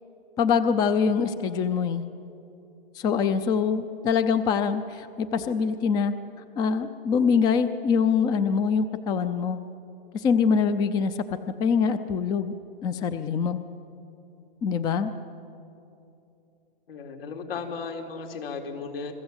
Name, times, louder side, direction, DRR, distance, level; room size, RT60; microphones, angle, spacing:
voice 1, 0.4-2.0 3.0-6.1 6.6-9.6 10.1-11.1 11.6-12.5 12.8-13.6 14.6-15.1, left 6 dB, 15° left, 11 dB, 0.5 m, -24 dB
voice 2, 16.9-19.1, left 5 dB, 75° left, 3 dB, 4.0 m, -35 dB
28.0 x 21.5 x 8.1 m, 2.8 s
hypercardioid pair, 155°, 29 cm